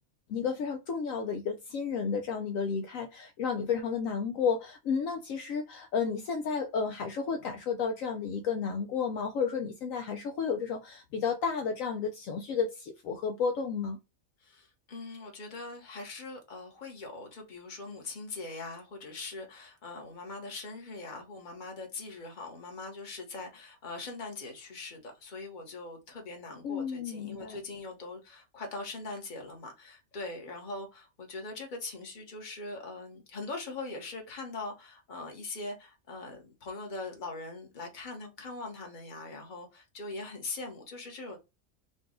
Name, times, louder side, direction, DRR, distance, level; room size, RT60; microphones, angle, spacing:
voice 1, 0.3-14.0 26.6-27.6, left 6 dB, 70° left, 1.0 m, -32 dB
voice 2, 14.4-41.4, left 3 dB, 35° left, 1.1 m, -41 dB
4.0 x 2.3 x 3.6 m
omnidirectional pair, 1.5 m